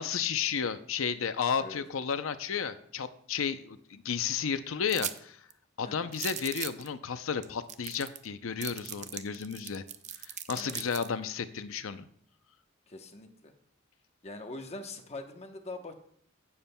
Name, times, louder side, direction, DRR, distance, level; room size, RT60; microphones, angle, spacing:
voice 1, 0.0-5.4 5.8-9.8 10.2-12.1, left 6 dB, 70° left, 11 dB, 0.6 m, -33 dB
sound 1, 4.9-5.2 5.5-5.6 6.1-6.9 7.4-7.5 7.7-8.3 8.6-11.1, right 10 dB, 35° right, 0.5 m, -38 dB
voice 2, 12.9-13.5 14.2-15.9, left 2 dB, 30° left, 5 dB, 0.9 m, -43 dB
16.0 x 7.2 x 2.2 m, 0.63 s
head